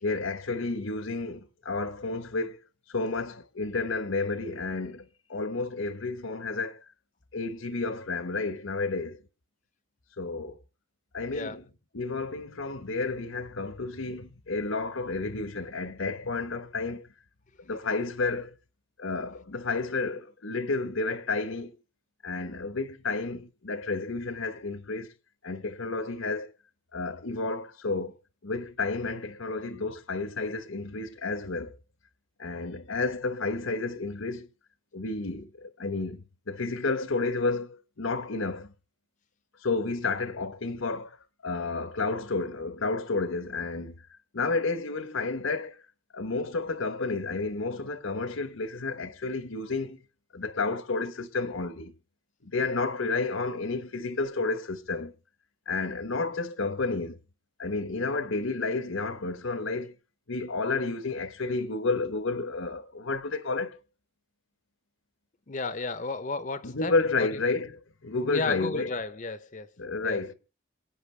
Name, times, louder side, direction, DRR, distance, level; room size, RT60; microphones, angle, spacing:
voice 1, 0.0-2.6 2.9-6.8 7.3-9.2 10.2-10.6 11.1-11.6 11.9-17.1 17.7-18.5 19.0-21.7 22.2-25.1 25.4-26.5 26.9-28.1 28.4-31.7 32.4-34.5 34.9-38.7 39.6-41.2 41.4-43.9 44.3-45.8 46.1-50.0 50.3-51.9 52.4-55.1 55.7-57.2 57.6-59.9 60.3-63.8 66.6-67.7 68.0-68.9 69.8-70.3, left 3 dB, 80° left, 1.2 m, -31 dB
voice 2, 65.5-66.9 67.2-67.4 68.1-69.7 70.0-70.2, left 3 dB, 40° left, 0.7 m, -33 dB
27.5 x 9.2 x 3.3 m
head